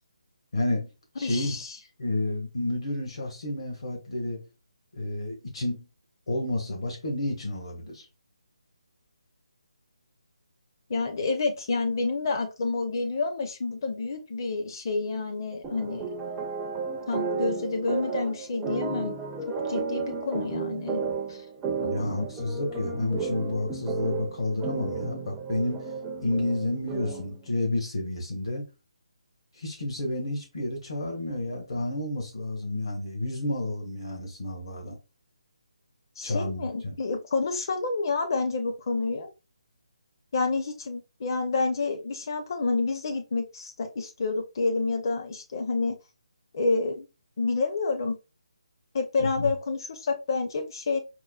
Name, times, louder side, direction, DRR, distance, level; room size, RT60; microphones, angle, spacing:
voice 1, 0.5-0.9 1.2-1.5 2.0-4.4 4.9-5.8 6.3-8.1 21.8-25.8 26.2-28.6 29.5-35.0 36.2-36.9 49.2-49.5, left 2 dB, 60° left, 1.3 m, -30 dB
voice 2, 1.2-1.7 10.9-16.1 17.1-19.2 19.7-21.0 21.3-21.4 21.8-22.3 36.2-39.3 40.3-46.0 46.5-47.1 47.4-48.2 48.9-51.0, left 3 dB, 40° left, 0.7 m, -29 dB
sound 1, 15.6-27.4, right 4 dB, 10° right, 0.4 m, -33 dB
4.6 x 2.1 x 2.3 m
hypercardioid pair, 165°, 3 cm